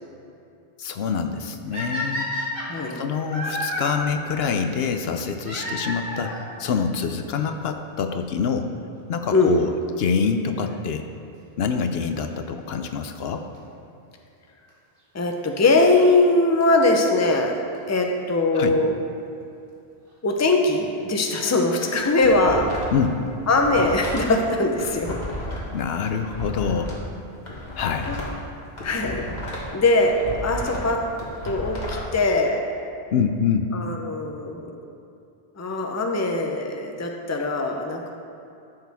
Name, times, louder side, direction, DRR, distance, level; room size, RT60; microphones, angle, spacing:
voice 1, 0.8-2.3 2.9-8.7 9.1-11.0 11.6-13.4 18.5-18.8 22.9-23.2 25.7-27.0 27.8-28.2 33.1-33.7, left 6 dB, 70° left, 6 dB, 0.8 m, -26 dB
sound 1, 1.7-3.9 5.4-6.5 7.4-7.5 8.2-8.3 8.5-8.6 10.5-10.7 13.5-13.6 14.7-14.8 16.2-16.3 16.6-16.7 16.9-17.0 17.2-17.3 17.5-17.6 17.7-17.8 18.1-18.2, equal, 55° right, 1.7 m, -30 dB
voice 2, 2.7-3.0 9.3-9.6 15.1-17.6 17.9-18.9 20.2-22.7 23.5-25.2 28.1-28.2 28.8-29.3 29.7-31.1 31.4-32.6 33.7-34.7 35.6-38.1, left 2 dB, 20° left, 2 dB, 0.6 m, -21 dB
sound 2, 21.8-23.1 23.3-26.9 27.3-29.7 30.0-32.0, left 1 dB, 40° left, 1.8 m, -33 dB
13.5 x 6.7 x 3.5 m, 2.6 s
omnidirectional pair, 1.1 m